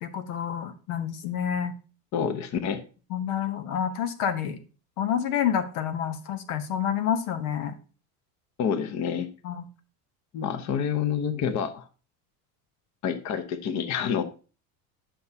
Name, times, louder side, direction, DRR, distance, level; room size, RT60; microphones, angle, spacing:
voice 1, 0.0-1.7 3.1-4.6 5.0-7.7 9.4-9.6, left 9 dB, 85° left, 9 dB, 1.2 m, -28 dB
voice 2, 2.1-2.8 8.6-9.3 10.3-11.8 13.0-14.2, left 7 dB, 40° left, 10 dB, 0.9 m, -28 dB
10.0 x 5.5 x 2.8 m, 0.36 s
supercardioid pair, 125°, 44 cm